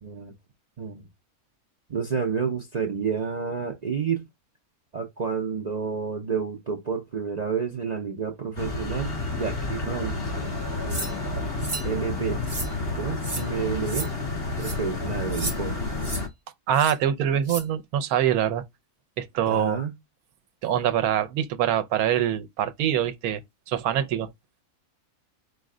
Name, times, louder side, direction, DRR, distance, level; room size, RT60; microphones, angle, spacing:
voice 1, 0.0-0.3 0.8-1.0 1.9-4.2 4.9-10.6 10.8-11.3 11.8-12.4 12.9-14.1 14.6-15.8 19.5-19.9, right 6 dB, 60° right, 0.4 m, -30 dB
sound 1, 8.6-16.3, left 3 dB, 45° left, 1.6 m, -30 dB
sound 2, 10.9-11.1 11.6-11.9 12.4-12.7 13.2-13.4 13.9-14.1 14.6-14.8 15.3-15.6 16.0-16.2 16.7-16.9 17.4-17.6, right 2 dB, 20° right, 0.9 m, -33 dB
voice 2, 16.7-18.6 19.2-19.8 20.6-23.4 23.7-24.3, right 10 dB, 80° right, 1.1 m, -24 dB
5.0 x 2.1 x 3.6 m
omnidirectional pair, 1.5 m